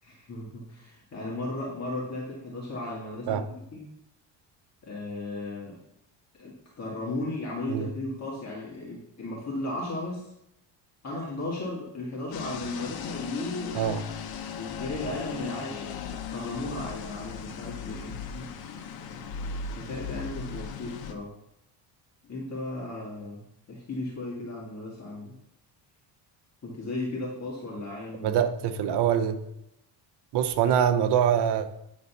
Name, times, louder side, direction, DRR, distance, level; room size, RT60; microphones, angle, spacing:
voice 1, 0.0-3.9 4.8-5.8 6.3-10.3 11.0-13.8 14.5-16.0 16.3-21.3 22.2-25.4 26.6-28.4, left 2 dB, 35° left, -4 dB, 2.0 m, -36 dB
sound 1, 12.3-21.1, left 6 dB, 55° left, 1.0 m, -37 dB
voice 2, 28.2-29.4 30.3-31.7, right 9 dB, 60° right, 9 dB, 0.9 m, -24 dB
9.5 x 4.2 x 5.6 m, 0.80 s
cardioid pair, 115°, 45 cm